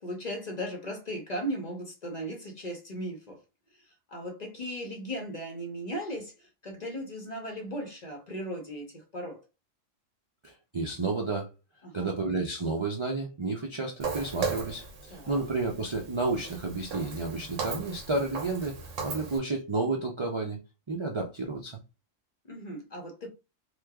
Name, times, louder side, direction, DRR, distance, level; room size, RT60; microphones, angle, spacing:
voice 1, 0.0-3.4 3.7-9.4 11.8-12.1 15.1-15.4 22.4-23.3, equal, 40° left, 0.7 m, -37 dB
voice 2, 10.4-11.5 11.9-18.8 19.0-20.6 20.9-21.8, right 3 dB, 45° right, 0.3 m, -31 dB
Walk footsteps, 14.0-19.4, right 5 dB, 75° right, 1.1 m, -37 dB
3.1 x 2.1 x 3.4 m
omnidirectional pair, 1.3 m